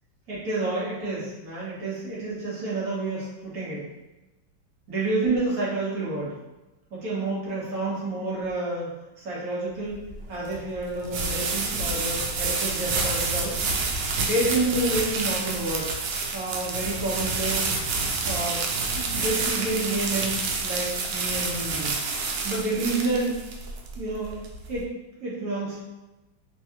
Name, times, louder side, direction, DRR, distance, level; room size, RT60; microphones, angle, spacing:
voice 1, 0.3-3.8 4.9-6.3 6.9-8.9 9.2-13.6 14.2-15.9 16.3-17.7 18.2-18.6 18.9-20.3 20.6-22.0 22.4-23.4 24.0-24.4 24.7-24.9 25.2-25.8, right 2 dB, 50° right, -6 dB, 1.4 m, -29 dB
sound 1, 9.9-24.8, right 4 dB, 90° right, 1.4 m, -28 dB
3.5 x 3.0 x 2.8 m, 1.1 s
omnidirectional pair, 2.2 m